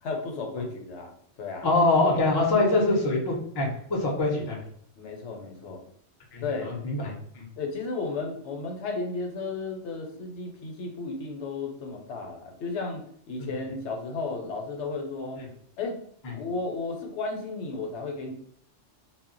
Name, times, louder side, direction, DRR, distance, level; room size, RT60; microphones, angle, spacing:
voice 1, 0.0-1.7 5.0-5.8 6.4-6.7 7.6-15.4 15.8-16.0 16.3-18.3, left 3 dB, 75° left, 3 dB, 0.9 m, -34 dB
voice 2, 1.6-4.6 6.3-7.4 13.4-13.5 15.4-15.5 16.2-16.3, left 2 dB, 30° left, -1 dB, 0.4 m, -24 dB
2.1 x 2.0 x 3.7 m, 0.65 s
omnidirectional pair, 1.3 m